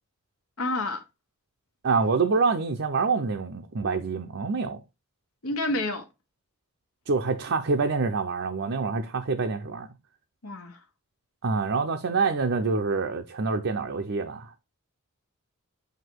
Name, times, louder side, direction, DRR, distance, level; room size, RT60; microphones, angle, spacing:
voice 1, 0.6-1.0 5.4-6.0 10.4-10.8, left 2 dB, 70° left, 1.3 m, -29 dB
voice 2, 1.8-4.8 7.1-9.9 11.4-14.6, right 4 dB, 55° right, 0.6 m, -26 dB
8.0 x 2.8 x 4.5 m
head